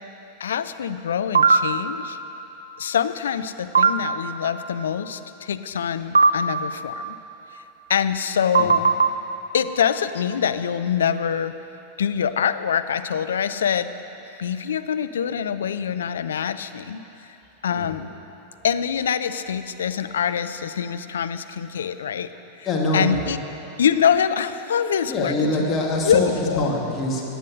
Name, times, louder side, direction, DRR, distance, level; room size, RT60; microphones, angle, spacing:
voice 1, 0.4-2.2 2.8-7.2 7.9-8.9 9.5-11.5 12.0-13.9 14.4-17.0 17.6-18.1 18.6-22.3 22.6-22.7 22.9-23.4 23.8-25.3 26.0-26.2 26.5-26.7, left 8 dB, 65° left, 10 dB, 0.5 m, -24 dB
sound 1, 1.4-1.6 3.8-3.9 6.2-6.3 8.6-9.1, right 5 dB, 75° right, 0.5 m, -15 dB
voice 2, 22.6-23.2 25.1-27.2, left 2 dB, 25° left, -2 dB, 2.4 m, -24 dB
16.0 x 9.2 x 6.4 m, 3.0 s
figure-of-eight pair, 90°, 0 cm